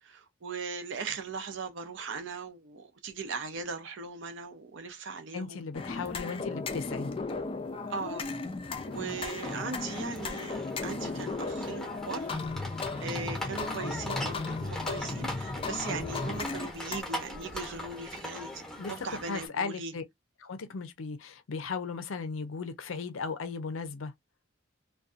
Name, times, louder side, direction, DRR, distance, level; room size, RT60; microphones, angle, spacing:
voice 1, 0.0-5.6 7.9-8.3 8.9-12.3 12.7-19.9, right 4 dB, 65° right, 0.6 m, -39 dB
voice 2, 5.3-7.1 18.8-18.9 19.3-20.0 20.4-24.1, left 4 dB, 75° left, 0.5 m, -36 dB
sound 1, 5.7-17.0, left 3 dB, 25° left, 0.4 m, -35 dB
sound 2, 8.9-19.5, left 1 dB, 5° left, 0.8 m, -41 dB
2.6 x 2.3 x 2.3 m
head